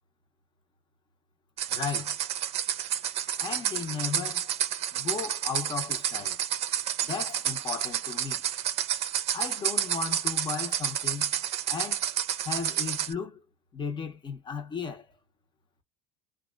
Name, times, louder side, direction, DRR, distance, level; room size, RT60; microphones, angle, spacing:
sound 1, 1.6-13.1, right 9 dB, 40° right, 0.6 m, -30 dB
voice 1, 1.7-2.2 3.4-4.5 4.9-6.4 7.0-8.4 9.3-11.3 11.7-12.1 12.4-13.4 13.7-15.1, left 6 dB, 30° left, 0.9 m, -35 dB
2.9 x 2.3 x 2.4 m
supercardioid pair, 110°, 16 cm